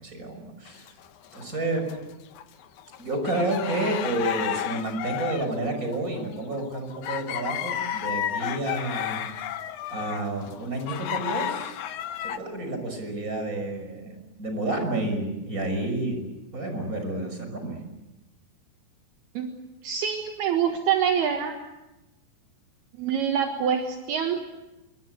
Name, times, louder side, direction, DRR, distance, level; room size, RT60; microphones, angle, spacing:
voice 1, 0.0-0.9 1.3-1.9 3.0-9.3 9.9-11.8 12.2-16.2 16.5-17.8, right 2 dB, 20° right, 6 dB, 6.1 m, -30 dB
sound 1, 0.7-2.0 2.4-12.4, left 10 dB, 75° left, 1.8 m, -32 dB
voice 2, 19.8-21.6 23.0-24.4, right 8 dB, 70° right, 4 dB, 3.4 m, -25 dB
27.5 x 24.5 x 8.0 m, 1.0 s
omnidirectional pair, 4.9 m